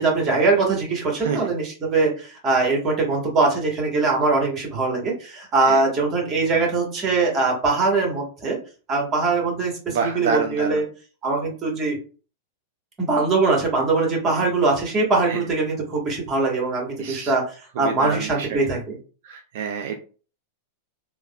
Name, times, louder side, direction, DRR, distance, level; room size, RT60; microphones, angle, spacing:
voice 1, 0.0-8.6 8.9-10.8 11.2-12.0 13.0-19.0, right 3 dB, 30° right, 1 dB, 1.2 m, -22 dB
voice 2, 9.9-10.8 14.4-14.5 15.3-15.4 17.0-17.3 17.8-18.8 19.2-20.0, right 6 dB, 65° right, 4 dB, 0.3 m, -28 dB
3.2 x 2.1 x 2.2 m, 0.38 s
hypercardioid pair, 115°, 0 cm